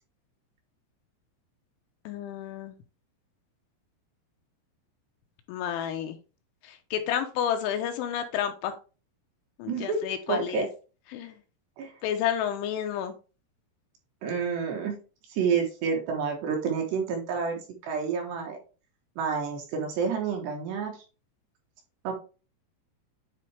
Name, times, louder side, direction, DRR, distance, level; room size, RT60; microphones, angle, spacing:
voice 1, 2.1-2.7 5.5-6.2 6.6-8.8 9.6-10.7 11.1-11.4 12.0-13.1, left 9 dB, 85° left, 6 dB, 2.9 m, -30 dB
voice 2, 9.7-10.0 10.3-10.6 11.8-11.9 14.2-15.0 15.3-18.6 19.2-20.9 22.0-22.1, right 6 dB, 70° right, 2 dB, 3.0 m, -29 dB
9.9 x 4.2 x 3.3 m, 0.33 s
omnidirectional pair, 5.8 m